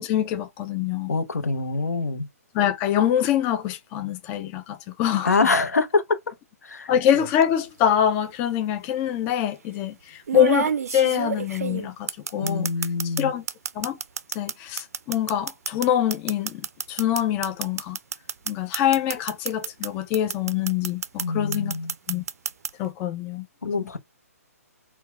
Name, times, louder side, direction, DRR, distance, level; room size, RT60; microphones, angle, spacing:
voice 1, 0.0-1.2 2.5-5.5 6.9-12.7 13.0-13.4 13.8-14.0 14.3-18.0 18.5-21.8 22.1-22.2 22.8-23.5, left 10 dB, 20° left, 0.3 m, -25 dB
voice 2, 1.1-2.3 5.2-6.2 6.6-6.9 12.3-13.3 21.2-21.9 23.6-24.0, left 3 dB, 80° left, 0.7 m, -25 dB
sound 1, 7.1-7.4 8.6-8.7 10.3-13.2 13.5-19.9 20.1-21.2 21.5-22.7, right 7 dB, 70° right, 0.3 m, -29 dB
4.1 x 2.2 x 2.3 m
hypercardioid pair, 140°, 9 cm